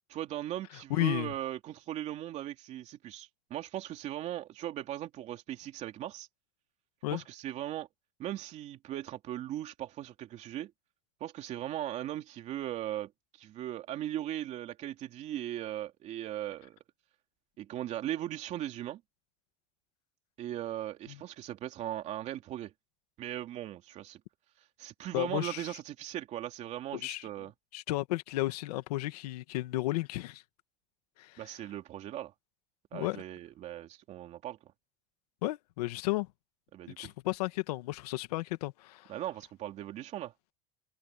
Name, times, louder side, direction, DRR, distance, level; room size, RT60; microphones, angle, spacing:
voice 1, 0.1-6.3 7.1-7.9 8.2-10.7 11.2-16.8 17.6-19.0 20.4-22.7 23.2-24.2 24.8-27.5 31.4-32.3 32.9-34.6 36.7-37.1 39.1-40.3, right 12 dB, 35° right, 3.0 m, -38 dB
voice 2, 0.9-1.3 7.0-7.2 21.1-21.2 25.1-25.7 27.0-27.3 27.7-30.4 31.2-31.4 32.9-33.2 35.4-36.3 37.0-39.1, left 18 dB, 90° left, 2.1 m, -33 dB
supercardioid pair, 160°, 19 cm